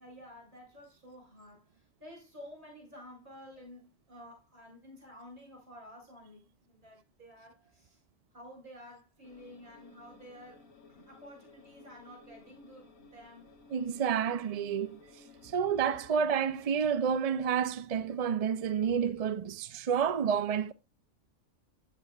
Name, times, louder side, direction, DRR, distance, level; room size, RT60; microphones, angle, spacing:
voice 1, 0.0-8.0 8.3-13.5, equal, 35° right, 8.2 m, -52 dB
sound 1, 9.2-16.8, left 3 dB, 90° left, 1.8 m, -57 dB
voice 2, 13.7-15.0 15.4-20.7, right 7 dB, 60° right, 0.4 m, -29 dB
16.0 x 7.8 x 2.3 m
omnidirectional pair, 1.4 m